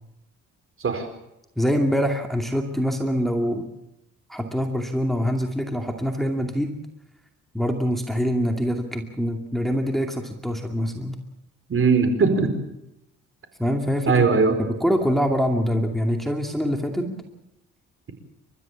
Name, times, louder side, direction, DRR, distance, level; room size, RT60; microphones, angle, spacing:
voice 1, 1.6-3.7 4.3-6.8 7.5-11.2 13.6-14.3 14.6-17.1, equal, ahead, 3 dB, 2.4 m, -24 dB
voice 2, 11.7-12.5 14.1-14.6 17.0-17.1, right 4 dB, 45° right, 8 dB, 4.6 m, -20 dB
30.0 x 13.5 x 7.3 m, 0.88 s
cardioid pair, 90°, 30 cm